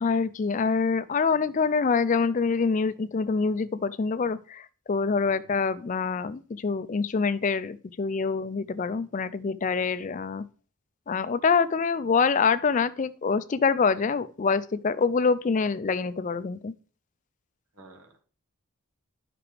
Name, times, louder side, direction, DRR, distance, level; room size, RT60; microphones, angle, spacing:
voice 1, 0.0-10.4 11.1-16.7, left 5 dB, 35° left, 0.3 m, -25 dB
voice 2, 5.2-5.5 17.7-18.2, equal, 90° right, 1.8 m, -50 dB
11.0 x 5.8 x 3.4 m
head